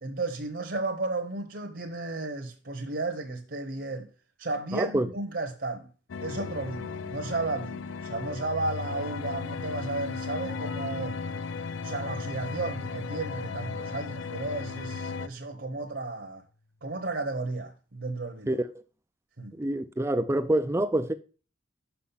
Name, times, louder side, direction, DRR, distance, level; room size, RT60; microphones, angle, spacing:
voice 1, 0.0-4.1 4.4-5.9 6.2-11.2 11.8-16.4 16.8-18.6 19.4-19.5, right 2 dB, 65° right, 1.0 m, -33 dB
voice 2, 4.7-5.1 18.5-18.7 19.6-21.1, right 1 dB, 15° right, 0.3 m, -26 dB
sound 1, 6.1-15.3, left 4 dB, 90° left, 0.4 m, -36 dB
sound 2, 10.5-15.9, left 2 dB, 65° left, 0.8 m, -46 dB
6.2 x 5.8 x 5.7 m
head